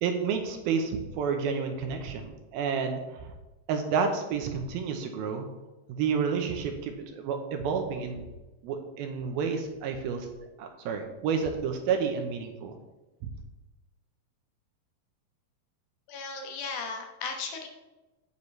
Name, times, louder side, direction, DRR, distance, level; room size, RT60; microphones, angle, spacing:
voice 1, 0.0-3.3 3.7-5.5 5.9-8.2 8.6-10.3 10.6-12.8, right 6 dB, 75° right, 5 dB, 2.5 m, -30 dB
voice 2, 16.1-17.7, left 4 dB, 70° left, 3 dB, 2.8 m, -36 dB
9.6 x 8.4 x 3.2 m, 1.1 s
omnidirectional pair, 4.6 m